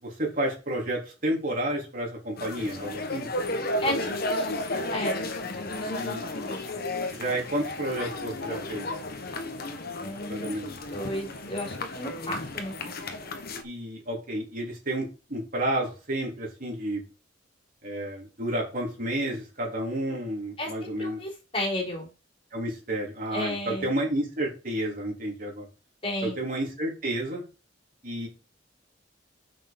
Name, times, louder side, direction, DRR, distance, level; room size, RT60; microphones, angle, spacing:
voice 1, 0.0-3.3 5.9-6.3 7.1-8.9 10.3-10.7 13.6-17.0 17.8-21.2 22.5-25.7 26.2-27.4 28.0-28.3, right 1 dB, 45° right, -2 dB, 3.7 m, -31 dB
sound 1, 2.4-13.6, left 2 dB, 55° left, 1.3 m, -33 dB
voice 2, 3.8-6.6 10.0-10.5 10.9-13.0 20.6-22.1 23.3-23.9 26.0-26.4, left 1 dB, 30° left, 0 dB, 3.4 m, -34 dB
6.5 x 6.3 x 5.3 m, 0.32 s
head